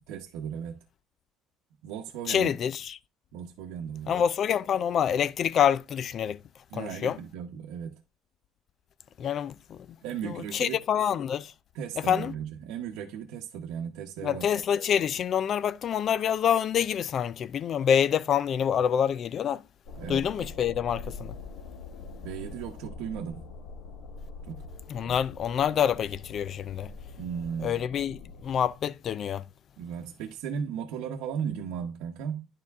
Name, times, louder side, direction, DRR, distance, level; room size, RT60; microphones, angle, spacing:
voice 1, 0.1-0.8 1.8-2.5 3.3-4.1 6.7-8.0 10.0-10.8 11.7-14.5 20.0-20.2 22.2-23.5 24.4-24.6 25.0-25.2 27.2-27.9 29.8-32.5, right 7 dB, 75° right, 0.9 m, -36 dB
voice 2, 2.3-3.0 4.1-6.4 6.7-7.2 9.2-9.9 10.2-11.5 12.1-12.3 14.2-19.6 20.1-21.3 24.9-26.9 27.6-29.4, left 8 dB, 35° left, 0.3 m, -27 dB
sound 1, 19.8-28.7, left 4 dB, 65° left, 2.1 m, -44 dB
10.5 x 4.7 x 3.5 m
cardioid pair, 165°, 0 cm